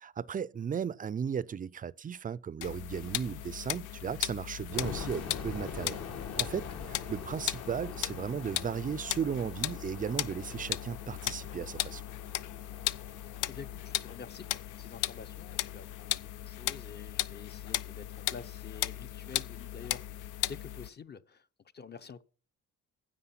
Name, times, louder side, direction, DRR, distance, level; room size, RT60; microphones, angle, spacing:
voice 1, 0.0-6.0 6.4-12.0, right 7 dB, 30° right, 0.4 m, -36 dB
sound 1, 2.6-20.9, left 13 dB, 85° left, 0.5 m, -37 dB
sound 2, 4.7-15.6, left 6 dB, 55° left, 1.5 m, -44 dB
voice 2, 13.5-21.5 21.7-22.2, left 6 dB, 35° left, 0.7 m, -48 dB
10.0 x 7.6 x 5.8 m
cardioid pair, 90°, 30 cm